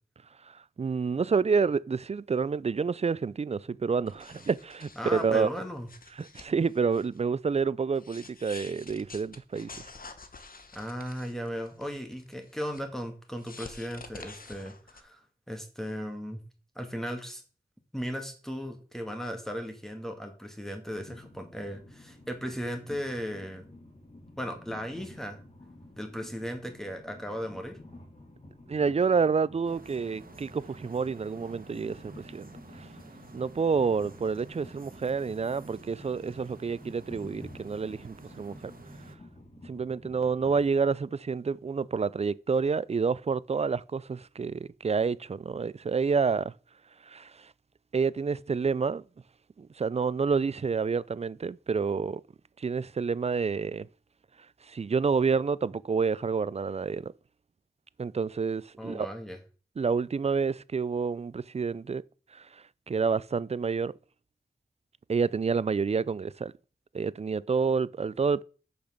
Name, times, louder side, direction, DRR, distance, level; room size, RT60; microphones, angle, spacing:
voice 1, 0.4-5.5 6.2-9.9 28.7-32.5 32.8-32.9 33.3-38.7 39.6-46.5 47.1-47.5 47.9-49.0 49.6-52.2 52.6-53.9 54.7-57.1 58.0-59.1 59.8-62.0 62.3-63.9 65.1-66.5 66.9-68.4, right 5 dB, 40° right, 0.4 m, -28 dB
sound 1, 4.1-7.2 7.5-7.6 7.9-12.8 13.4-15.0, left 3 dB, 60° left, 1.1 m, -48 dB
voice 2, 5.0-5.9 10.7-16.4 16.8-17.4 17.9-23.7 24.4-25.4 25.9-27.8 58.8-59.4, equal, 5° left, 2.2 m, -36 dB
Train, 20.9-40.7, left 2 dB, 40° left, 3.2 m, -51 dB
sound 2, 29.6-39.2, right 3 dB, 65° right, 1.5 m, -51 dB
6.7 x 6.0 x 6.5 m
wide cardioid pair, 55°, 16 cm